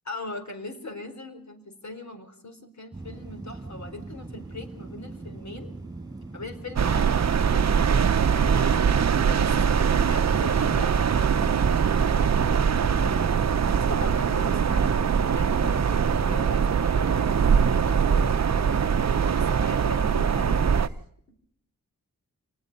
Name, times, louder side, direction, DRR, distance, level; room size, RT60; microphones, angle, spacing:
voice 1, 0.0-5.7 6.3-13.3 13.7-18.6 19.2-21.0 21.3-21.4, left 2 dB, 55° left, 8 dB, 4.4 m, -41 dB
sound 1, 2.9-16.7, right 2 dB, 10° right, 4.8 m, -40 dB
sound 2, 6.8-20.9, right 7 dB, 50° right, 0.8 m, -22 dB
28.5 x 19.5 x 5.4 m, 0.71 s
wide cardioid pair, 75°, 34 cm